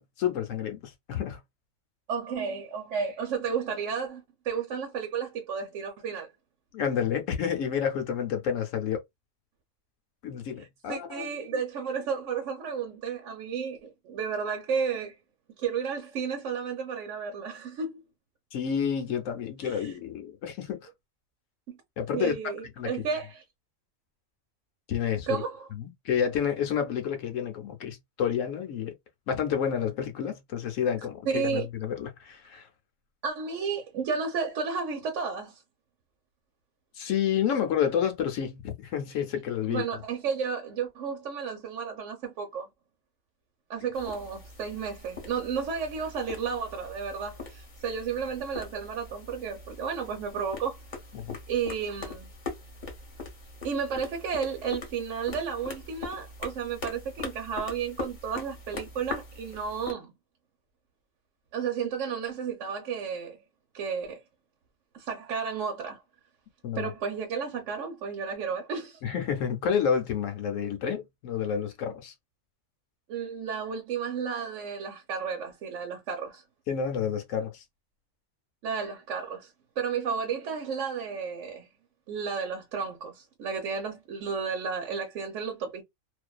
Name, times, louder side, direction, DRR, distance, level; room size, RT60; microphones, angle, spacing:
voice 1, 0.0-1.4 6.7-9.0 10.2-11.3 18.5-20.9 22.0-22.3 22.6-22.9 24.9-25.4 25.8-28.9 29.3-32.7 36.9-39.8 51.1-51.4 66.6-66.9 69.0-72.1 76.7-77.6, left 8 dB, 75° left, 0.9 m, -29 dB
voice 2, 2.1-6.3 10.9-15.1 15.6-18.0 19.6-19.9 21.7-21.8 22.1-23.4 25.3-25.7 31.3-31.7 33.2-35.6 39.7-42.7 43.7-50.8 51.5-52.3 53.6-60.1 61.5-63.4 63.7-64.2 64.9-66.0 66.8-69.0 73.1-76.4 78.6-81.7 82.1-85.8, right 6 dB, 70° right, 1.0 m, -32 dB
sound 1, 43.9-59.9, left 3 dB, 40° left, 0.8 m, -42 dB
2.5 x 2.2 x 2.2 m
omnidirectional pair, 1.4 m